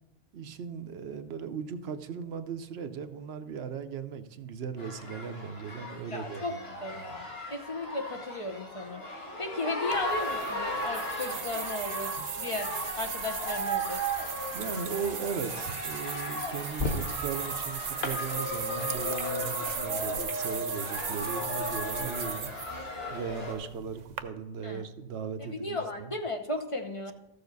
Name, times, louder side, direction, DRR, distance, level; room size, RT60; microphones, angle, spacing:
voice 1, 0.3-6.6 14.5-22.5 23.1-26.1, right 6 dB, 85° right, 9 dB, 1.0 m, -37 dB
sound 1, 4.8-23.6, equal, 75° left, 2.2 m, -36 dB
voice 2, 6.1-6.5 6.8-14.0 24.6-24.8 25.4-27.1, left 2 dB, 35° left, 4 dB, 0.9 m, -36 dB
sound 2, 9.9-24.2, right 8 dB, 50° right, 0.6 m, -38 dB
sound 3, 16.2-21.0, left 2 dB, 55° left, 1.4 m, -40 dB
13.5 x 6.9 x 4.0 m, 0.90 s
omnidirectional pair, 1.0 m